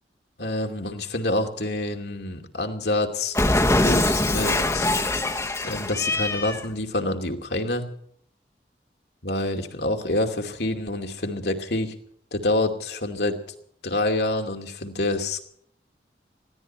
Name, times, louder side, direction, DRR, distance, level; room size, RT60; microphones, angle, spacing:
voice 1, 0.4-3.4 3.8-4.9 5.6-7.8 9.2-11.9 12.3-13.4 13.8-15.4, left 2 dB, 75° left, 4 dB, 2.6 m, -27 dB
Cat, 3.3-6.6, left 2 dB, 15° left, 1.1 m, -23 dB
20.5 x 16.0 x 4.4 m, 0.63 s
head